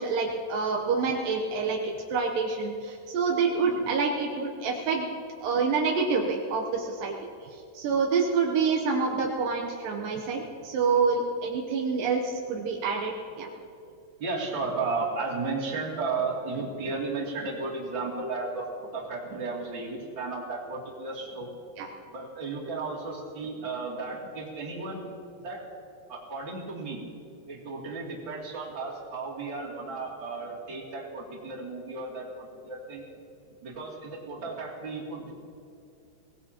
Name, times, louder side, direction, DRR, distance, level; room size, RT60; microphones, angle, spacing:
voice 1, 0.0-1.8 2.1-5.1 5.4-7.1 7.7-13.5 21.8-21.9, right 5 dB, 85° right, 1 dB, 1.9 m, -27 dB
voice 2, 14.2-21.5 22.0-25.0 25.4-25.6 26.1-27.0 27.5-33.1 33.6-35.3, right 3 dB, 30° right, -5 dB, 2.7 m, -34 dB
23.0 x 18.5 x 2.9 m, 2.5 s
omnidirectional pair, 5.3 m